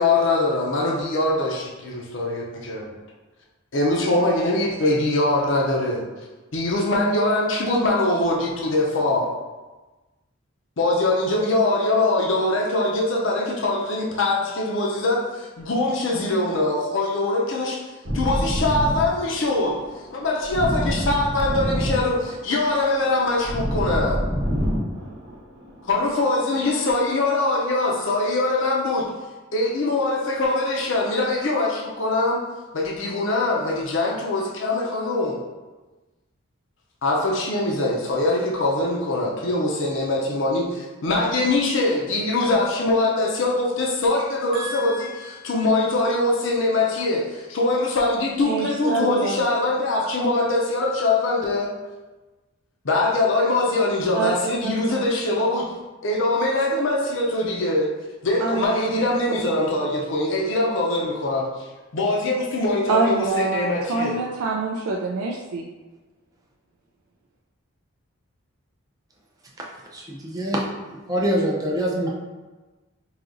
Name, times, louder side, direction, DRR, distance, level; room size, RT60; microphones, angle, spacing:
voice 1, 0.0-2.9 3.7-6.0 6.5-9.3 10.8-17.8 18.1-19.8 20.1-24.2 25.8-29.1 29.5-32.4 32.7-35.4 37.0-51.7 52.8-55.7 56.0-58.0 58.2-61.7 61.9-64.2, left 2 dB, 60° left, -2 dB, 0.6 m, -23 dB
sound 1, 18.0-26.1, equal, 50° right, 0.9 m, -27 dB
voice 2, 44.5-45.5 48.4-49.4 54.2-54.3 54.6-54.7 58.4-59.2 62.9-65.7, right 3 dB, 85° right, -1 dB, 0.4 m, -26 dB
voice 3, 69.6-70.6 70.9-72.1, equal, 15° right, -2 dB, 0.5 m, -25 dB
4.8 x 2.8 x 2.6 m, 1.2 s
head